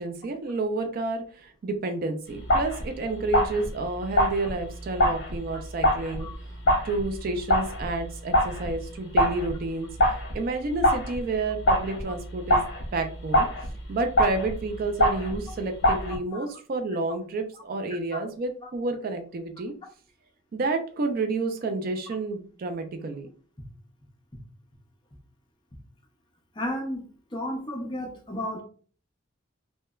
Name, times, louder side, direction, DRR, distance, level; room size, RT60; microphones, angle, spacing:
voice 1, 0.0-6.3 6.8-12.6 12.9-13.5 13.9-19.7 20.5-23.3, right 3 dB, 45° right, 5 dB, 0.3 m, -30 dB
sound 1, 2.4-8.9 9.2-15.6 15.8-16.2, equal, 55° left, 0.7 m, -26 dB
voice 2, 26.5-27.0 27.3-28.6, left 1 dB, 25° left, 2 dB, 0.5 m, -32 dB
3.0 x 2.1 x 2.2 m, 0.42 s
head